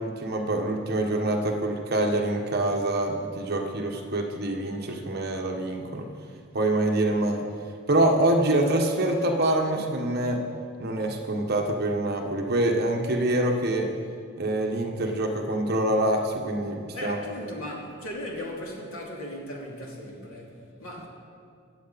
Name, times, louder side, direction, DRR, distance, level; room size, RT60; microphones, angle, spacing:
voice 1, 0.0-6.1 6.5-7.5 7.9-10.4 10.8-13.9 14.4-17.2, right 1 dB, 50° right, 2 dB, 1.3 m, -25 dB
voice 2, 16.9-21.1, left 1 dB, 85° left, -2 dB, 2.6 m, -37 dB
21.5 x 8.1 x 4.1 m, 2.3 s
head